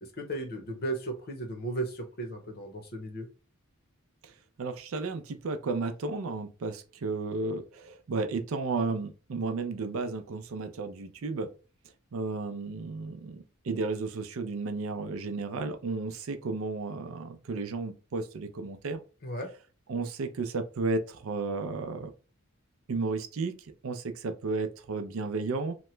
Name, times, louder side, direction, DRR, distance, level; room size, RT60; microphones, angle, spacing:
voice 1, 0.0-3.3 19.2-19.5, right 2 dB, 45° left, 0.7 m, -35 dB
voice 2, 4.6-11.5 12.1-19.0 19.9-22.1 22.9-23.5 23.8-25.7, right 3 dB, 75° right, 0.5 m, -33 dB
2.9 x 2.1 x 3.1 m
head